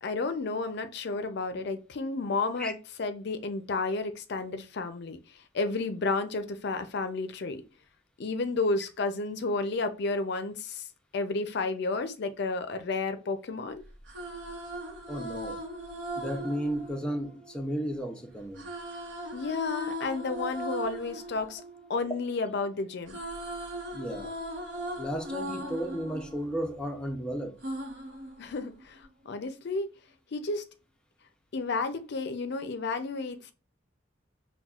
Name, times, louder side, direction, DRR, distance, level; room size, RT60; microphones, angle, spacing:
voice 1, 0.0-7.6 8.2-10.8 11.1-13.8 19.3-21.6 21.9-23.2 28.4-29.9 30.3-30.6 31.5-33.5, left 3 dB, 60° left, 0.4 m, -32 dB
sound 1, 13.9-18.0 18.6-22.6 22.9-27.1 27.6-29.1, right 1 dB, 65° right, 0.9 m, -39 dB
voice 2, 15.1-15.6 16.2-18.7 23.9-24.3 25.0-27.6, equal, 5° left, 0.6 m, -34 dB
5.7 x 2.2 x 2.3 m
head